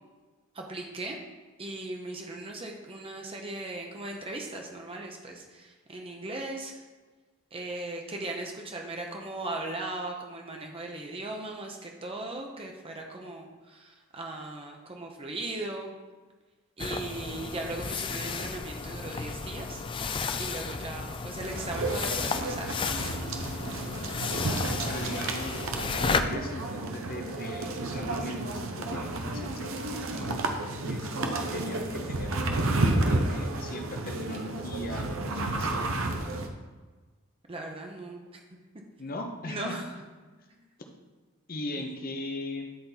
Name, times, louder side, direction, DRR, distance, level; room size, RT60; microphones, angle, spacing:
voice 1, 0.5-1.2 1.6-6.8 7.5-15.9 16.8-19.8 20.4-22.7 37.5-38.4 39.5-40.0 41.8-41.9, right 2 dB, 25° right, 1 dB, 0.7 m, -38 dB
sound 1, 16.8-26.2, left 5 dB, 25° left, 0.3 m, -33 dB
sound 2, 21.4-36.5, right 2 dB, 65° right, 0.8 m, -31 dB
voice 2, 23.9-25.6 26.0-30.4 30.9-35.8 39.0-39.8 41.5-42.7, left 1 dB, 45° left, 4 dB, 0.9 m, -39 dB
10.0 x 4.3 x 4.0 m, 1.3 s
head